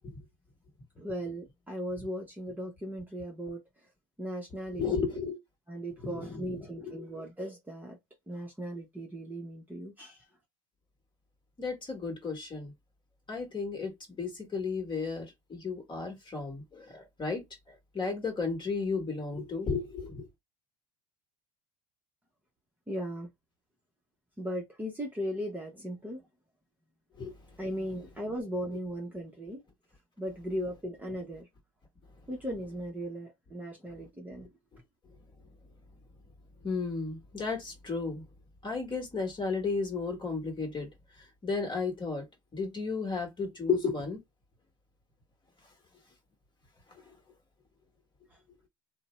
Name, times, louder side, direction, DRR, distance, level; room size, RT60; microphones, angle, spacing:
voice 1, 1.0-3.6 4.2-5.2 5.7-8.0 8.3-10.2 22.9-23.3 24.4-26.2 27.6-29.6 30.2-31.5 32.3-34.5, equal, 10° right, 0.9 m, -37 dB
voice 2, 4.8-5.4 6.0-7.1 11.6-12.7 13.3-17.4 17.9-20.3 27.2-27.4 36.6-38.2 38.6-40.9 41.4-42.2 42.5-44.2, left 4 dB, 25° left, 1.4 m, -33 dB
2.6 x 2.1 x 3.1 m
supercardioid pair, 95°, 18 cm